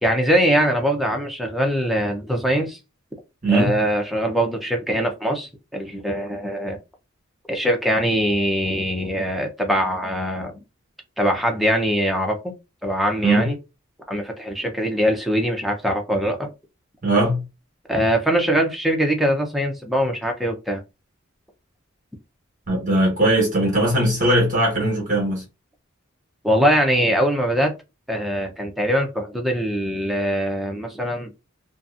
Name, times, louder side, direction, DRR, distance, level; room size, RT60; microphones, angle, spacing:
voice 1, 0.0-2.8 3.5-6.8 7.5-10.6 11.2-12.5 12.8-13.6 14.1-16.5 17.9-20.8 26.4-27.7 28.1-31.3, equal, ahead, 0.5 m, -22 dB
voice 2, 3.4-3.7 13.2-13.5 17.0-17.4 22.7-25.4, right 1 dB, 35° right, 1.2 m, -19 dB
2.6 x 2.4 x 2.4 m
head